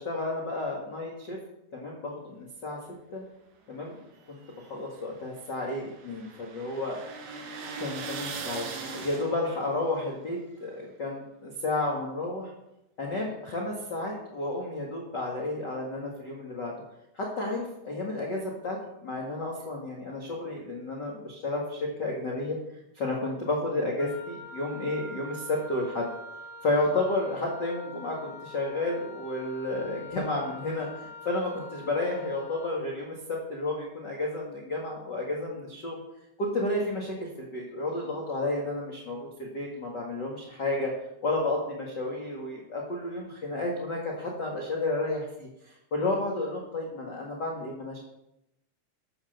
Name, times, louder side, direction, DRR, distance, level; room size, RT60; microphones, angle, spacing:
voice 1, 0.0-1.4 1.7-2.8 3.1-3.2 3.7-3.9 4.3-7.0 7.8-8.7 8.9-12.5 13.0-16.7 17.1-22.6 22.9-26.1 26.6-36.0 36.4-40.9 41.2-48.0, left 2 dB, 40° left, -2 dB, 1.8 m, -31 dB
sound 1, 4.2-9.7, right 4 dB, 70° right, 3.3 m, -40 dB
Wind instrument woodwind instrument, 24.0-32.8, left 2 dB, 80° left, 3.0 m, -45 dB
13.5 x 6.5 x 6.6 m, 0.85 s
omnidirectional pair, 4.4 m